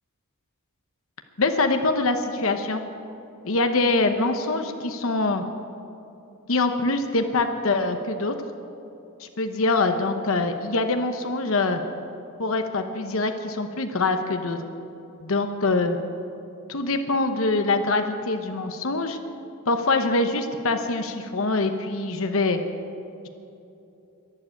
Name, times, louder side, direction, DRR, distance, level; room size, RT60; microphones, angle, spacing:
voice 1, 1.4-2.8 3.4-5.4 6.5-8.3 9.2-11.8 12.4-14.6 15.2-16.0 16.7-19.2 19.7-22.6, left 3 dB, 65° left, 7 dB, 0.9 m, -24 dB
11.5 x 11.5 x 9.0 m, 2.8 s
head